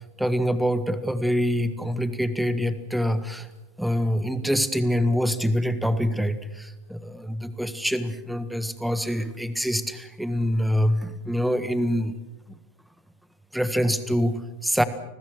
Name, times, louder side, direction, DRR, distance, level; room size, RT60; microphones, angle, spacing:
voice 1, 0.2-3.5 3.8-12.2 13.5-14.8, equal, ahead, 13 dB, 1.6 m, -25 dB
30.0 x 20.5 x 6.5 m, 1.0 s
figure-of-eight pair, 90°, 0 cm